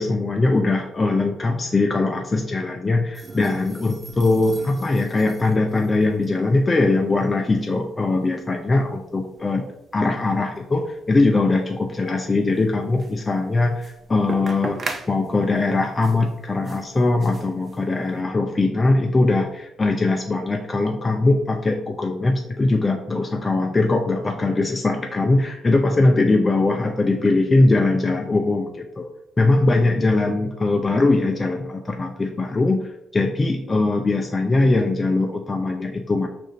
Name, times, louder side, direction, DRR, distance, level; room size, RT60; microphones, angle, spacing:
voice 1, 0.0-9.7 9.9-14.8 15.1-29.1 29.4-36.3, left 2 dB, 25° left, 3 dB, 0.4 m, -21 dB
sound 1, 3.1-18.2, right 3 dB, 40° right, 0.5 m, -40 dB
4.8 x 2.5 x 2.7 m, 0.84 s
cardioid pair, 90°, 0 cm